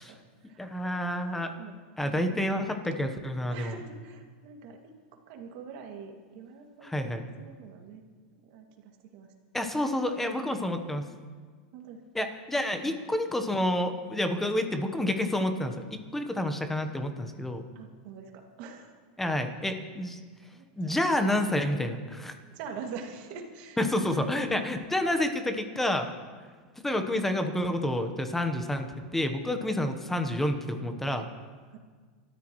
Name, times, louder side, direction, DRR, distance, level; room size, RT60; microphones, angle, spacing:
voice 1, 0.0-1.0 1.6-2.5 3.5-8.0 8.4-9.3 11.7-12.0 12.8-13.0 17.7-19.0 20.4-21.0 22.5-24.3 29.8-29.9 31.7-31.8, right 6 dB, 50° right, 2 dB, 2.3 m, -45 dB
voice 2, 0.6-1.5 2.0-3.8 6.8-7.2 9.5-11.1 12.1-17.6 19.2-20.2 20.8-22.3 23.8-26.1 26.8-28.9 29.1-31.3, left 1 dB, 5° left, 7 dB, 1.1 m, -29 dB
28.0 x 14.0 x 3.1 m, 1.5 s
supercardioid pair, 155°, 5 cm